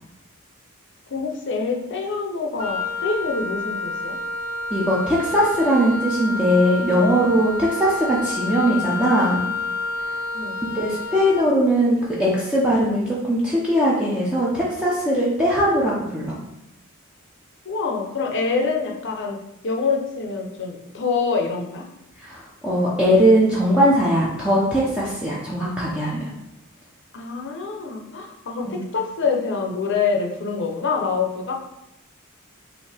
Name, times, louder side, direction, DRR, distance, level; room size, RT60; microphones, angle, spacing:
voice 1, 1.1-4.2 10.3-10.6 17.7-19.4 19.6-21.8 27.1-31.5, left 4 dB, 55° left, 2 dB, 0.7 m, -25 dB
Wind instrument woodwind instrument, 2.6-11.4, left 3 dB, 40° right, 0.5 m, -29 dB
voice 2, 4.7-9.5 10.7-16.4 22.2-26.3 28.7-28.9, equal, 5° right, -7 dB, 0.7 m, -20 dB
5.5 x 2.7 x 3.3 m, 0.85 s
head